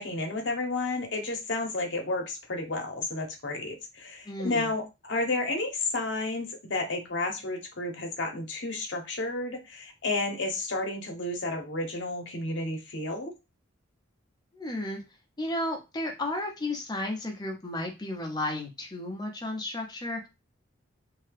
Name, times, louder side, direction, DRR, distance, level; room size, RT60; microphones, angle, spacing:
voice 1, 0.0-13.3, left 2 dB, 60° left, 3 dB, 0.8 m, -31 dB
voice 2, 4.3-4.7 14.5-15.0 15.4-20.3, left 1 dB, 20° left, 1 dB, 0.7 m, -33 dB
2.7 x 2.3 x 3.2 m, 0.25 s
head